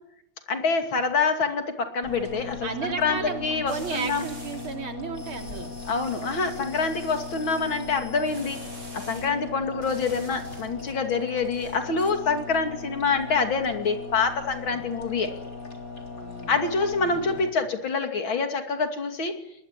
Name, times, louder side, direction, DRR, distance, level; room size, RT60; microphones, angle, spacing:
voice 1, 0.5-4.3 5.9-8.6 8.9-15.3 16.5-19.4, left 4 dB, 70° left, 6 dB, 3.4 m, -26 dB
sound 1, 2.0-17.5, left 4 dB, 40° left, 3.9 m, -39 dB
voice 2, 2.6-5.7 14.7-14.8 16.2-16.6 16.9-17.3, right 5 dB, 75° right, 4 dB, 3.8 m, -34 dB
sound 2, 3.7-4.7 5.1-9.3 9.8-10.9 11.4-12.1, equal, 35° right, 6.6 m, -46 dB
22.5 x 19.5 x 9.9 m, 0.80 s
omnidirectional pair, 2.3 m